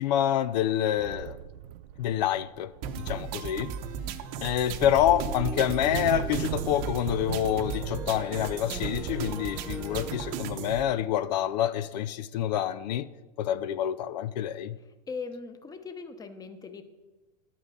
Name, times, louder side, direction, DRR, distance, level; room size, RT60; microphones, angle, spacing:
voice 1, 0.0-1.4 2.0-3.7 4.4-13.1 13.4-14.8, left 11 dB, 80° left, 0.5 m, -27 dB
sound 1, 1.0-11.2, right 12 dB, 75° right, 0.5 m, -39 dB
sound 2, 2.8-10.8, right 7 dB, 50° right, 0.9 m, -36 dB
sound 3, 5.1-10.4, right 1 dB, 5° right, 0.4 m, -42 dB
voice 2, 15.1-16.8, left 4 dB, 15° left, 0.9 m, -39 dB
11.5 x 5.5 x 6.8 m
supercardioid pair, 130°, 21 cm